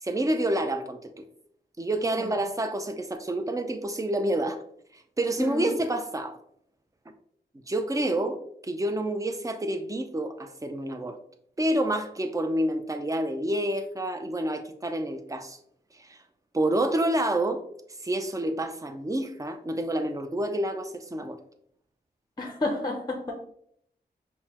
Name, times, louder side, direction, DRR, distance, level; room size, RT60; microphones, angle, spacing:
voice 1, 0.0-1.2 1.8-4.6 4.9-6.4 7.7-11.2 11.6-15.6 16.0-16.2 16.5-17.6 18.0-21.4, right 1 dB, 20° right, 7 dB, 0.5 m, -28 dB
voice 2, 2.0-2.3 5.4-5.7 22.4-23.3, left 2 dB, 25° left, 3 dB, 0.6 m, -31 dB
5.4 x 2.1 x 2.9 m, 0.68 s
cardioid pair, 60°, 18 cm